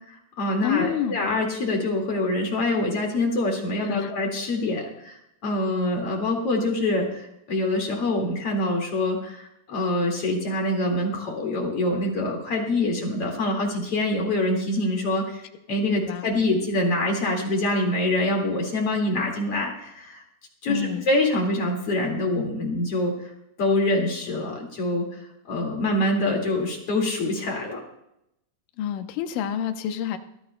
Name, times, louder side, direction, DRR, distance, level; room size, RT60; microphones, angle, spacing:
voice 1, 0.1-5.2 5.4-15.4 15.7-20.2 20.6-23.2 23.6-25.1 25.5-27.8, left 2 dB, 45° left, 0 dB, 2.6 m, -25 dB
voice 2, 0.6-1.3 3.9-4.1 16.0-16.3 20.7-21.1 28.8-30.2, left 9 dB, 75° left, 7 dB, 2.2 m, -28 dB
22.5 x 14.5 x 2.2 m, 0.80 s
omnidirectional pair, 4.4 m